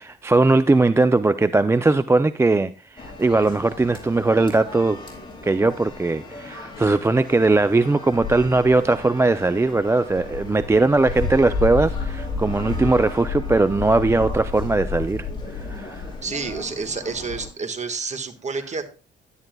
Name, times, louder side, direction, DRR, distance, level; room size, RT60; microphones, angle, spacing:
voice 1, 0.0-5.0 5.4-15.3 15.5-16.1, right 3 dB, 15° right, 0.4 m, -19 dB
sound 1, 3.0-17.5, left 4 dB, 25° left, 4.2 m, -32 dB
voice 2, 16.2-18.8, right 4 dB, 35° right, 1.5 m, -29 dB
11.0 x 10.5 x 2.2 m
cardioid pair, 90°, 20 cm